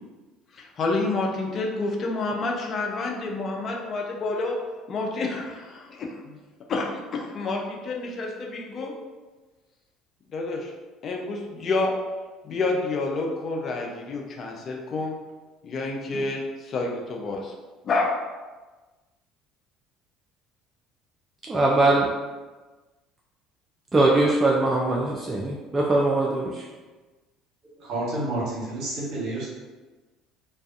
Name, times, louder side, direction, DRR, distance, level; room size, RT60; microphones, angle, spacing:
voice 1, 0.5-4.6 4.9-6.4 6.7-8.9 10.3-10.7 11.0-11.9 12.4-15.2 15.6-17.5 17.8-18.1, left 3 dB, 45° left, 0 dB, 0.5 m, -29 dB
voice 2, 21.4-22.1 23.9-26.7, right 2 dB, 20° right, -3 dB, 0.4 m, -21 dB
voice 3, 27.8-29.5, right 2 dB, 65° right, -6 dB, 1.1 m, -29 dB
2.4 x 2.2 x 2.5 m, 1.2 s
hypercardioid pair, 70°, 0 cm